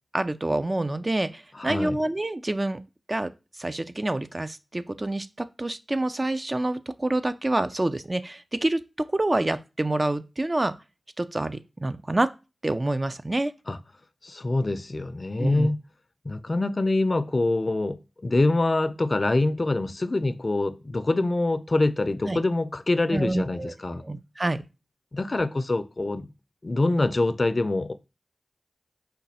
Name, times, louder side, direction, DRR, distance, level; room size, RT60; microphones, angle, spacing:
voice 1, 0.1-2.8 3.1-3.3 3.5-10.7 11.2-12.3 12.6-13.5 15.4-15.7 22.3-22.4 23.1-23.7 24.0-24.6, right 2 dB, 35° right, 0.4 m, -27 dB
voice 2, 1.6-2.0 13.7-13.8 14.2-15.8 16.3-24.0 25.1-26.3 26.6-27.9, left 2 dB, 50° left, 0.4 m, -25 dB
5.1 x 2.3 x 4.1 m
cardioid pair, 40°, 0 cm